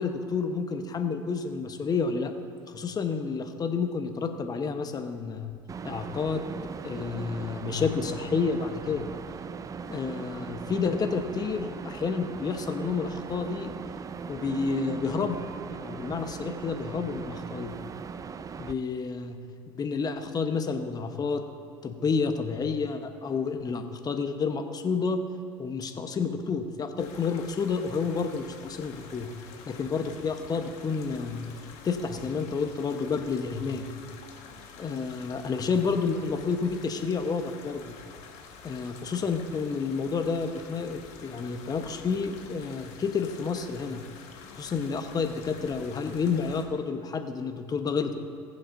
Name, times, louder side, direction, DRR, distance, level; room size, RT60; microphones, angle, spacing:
voice 1, 0.0-2.3 2.7-5.5 5.8-6.4 6.8-9.1 9.9-13.7 14.3-15.4 15.7-17.7 18.6-19.4 19.7-21.4 21.8-25.2 25.6-29.3 29.7-31.5 31.8-33.9 34.8-37.9 38.6-44.0 44.5-48.2, left 5 dB, 30° left, 7 dB, 1.1 m, -30 dB
sound 1, 5.7-18.7, right 6 dB, 30° right, 0.5 m, -39 dB
sound 2, 27.0-46.7, left 6 dB, 65° left, 1.5 m, -48 dB
21.0 x 7.4 x 2.7 m, 2.5 s
hypercardioid pair, 80°, 12 cm